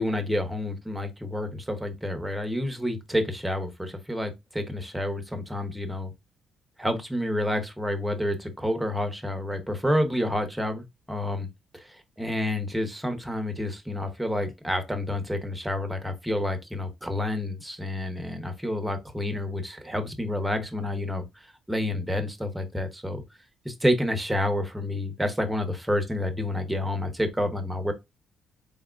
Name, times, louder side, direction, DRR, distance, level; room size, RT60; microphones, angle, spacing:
voice 1, 0.0-6.1 6.8-11.5 11.7-11.8 12.2-21.3 21.7-23.2 23.6-27.9, left 1 dB, 5° right, 0.9 m, -29 dB
4.1 x 3.5 x 2.4 m
cardioid pair, 90°, 0 cm